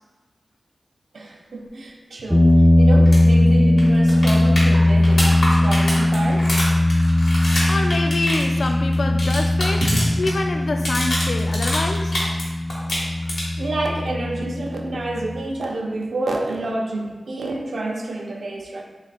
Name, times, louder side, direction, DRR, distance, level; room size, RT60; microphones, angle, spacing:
voice 1, 1.1-6.6 9.8-10.2 13.6-18.8, right 2 dB, 75° right, 1 dB, 0.6 m, -28 dB
sound 1, 2.3-15.4, left 1 dB, ahead, 0.4 m, -19 dB
sound 2, 3.1-3.2 3.5-3.6 3.8-10.3 10.6-12.4 12.7-13.7 15.7-15.8, left 1 dB, 85° left, 1.5 m, -26 dB
voice 2, 7.7-9.8 10.2-12.1, left 2 dB, 70° left, 5 dB, 0.4 m, -26 dB
3.3 x 3.1 x 4.0 m, 1.3 s
wide cardioid pair, 70°, 0 cm